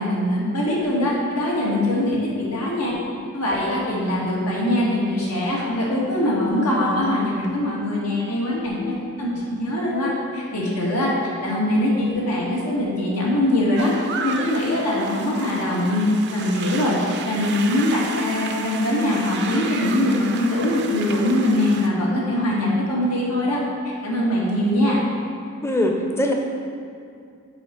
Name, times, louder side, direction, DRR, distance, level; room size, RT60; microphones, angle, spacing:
voice 1, 0.0-2.9 3.3-11.1 11.4-13.9 14.2-23.6 24.0-25.0, left 1 dB, 85° left, -5 dB, 1.8 m, -22 dB
sound 1, 13.8-21.9, right 5 dB, 50° right, 0.5 m, -33 dB
voice 2, 25.6-26.3, left 1 dB, 10° left, 2 dB, 0.6 m, -21 dB
6.9 x 5.5 x 4.5 m, 2.4 s
head